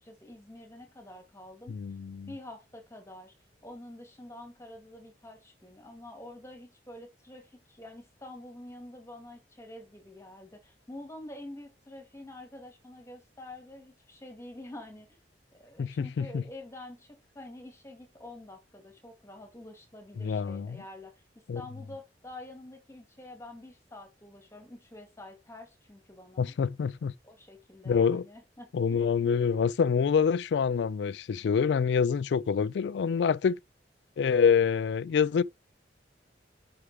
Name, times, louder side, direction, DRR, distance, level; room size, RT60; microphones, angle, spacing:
voice 1, 0.0-1.8 2.3-3.3 3.6-15.2 15.5-26.5 27.2-29.0, left 1 dB, 15° left, 2.3 m, -47 dB
voice 2, 1.7-2.3 15.8-16.4 20.2-20.8 21.5-21.6 26.4-27.1 27.9-28.2 28.7-33.6 34.2-35.4, left 6 dB, 75° left, 0.3 m, -26 dB
5.7 x 4.9 x 4.9 m
head